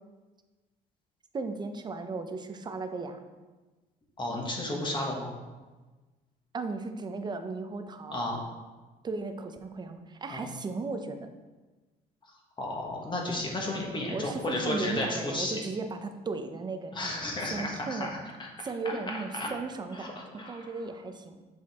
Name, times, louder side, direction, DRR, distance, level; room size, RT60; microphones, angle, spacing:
voice 1, 1.3-3.2 6.5-8.2 9.0-11.3 14.1-18.1 18.6-21.4, right 3 dB, 25° right, 7 dB, 0.6 m, -36 dB
voice 2, 4.2-5.3 8.1-8.4 10.3-10.5 12.6-15.6 16.9-18.1 18.4-18.5 18.8-19.0 19.3-19.5 20.0-20.7, left 1 dB, 30° left, -1 dB, 1.4 m, -33 dB
7.3 x 4.4 x 3.6 m, 1.2 s
cardioid pair, 110°, 17 cm